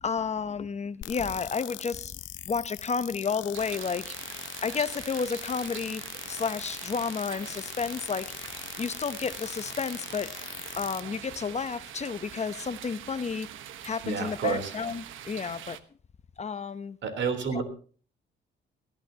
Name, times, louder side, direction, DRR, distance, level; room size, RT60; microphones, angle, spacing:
voice 1, 0.0-2.2 2.5-6.0 6.3-8.3 8.8-10.3 10.8-13.5 13.8-15.8 16.4-17.0 17.5-17.6, left 5 dB, 35° left, 0.8 m, -31 dB
sound 1, 1.0-11.0, left 13 dB, 75° left, 0.7 m, -41 dB
sound 2, 3.5-15.8, right 10 dB, 85° right, 1.2 m, -44 dB
voice 2, 14.0-14.7 17.0-17.6, right 5 dB, 70° right, 3.6 m, -29 dB
18.5 x 15.0 x 2.9 m
cardioid pair, 90°, 20 cm